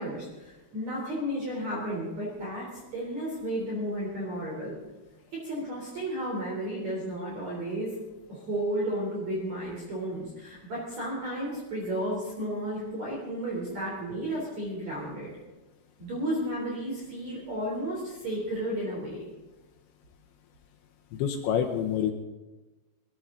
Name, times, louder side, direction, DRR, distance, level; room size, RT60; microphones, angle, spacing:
voice 1, 0.0-2.7 2.9-4.8 5.4-7.9 8.3-15.3 16.0-19.3, right 1 dB, 40° right, -4 dB, 4.3 m, -33 dB
voice 2, 21.1-22.1, left 8 dB, 75° left, 4 dB, 3.0 m, -27 dB
21.5 x 14.0 x 3.8 m, 1.1 s
omnidirectional pair, 5.7 m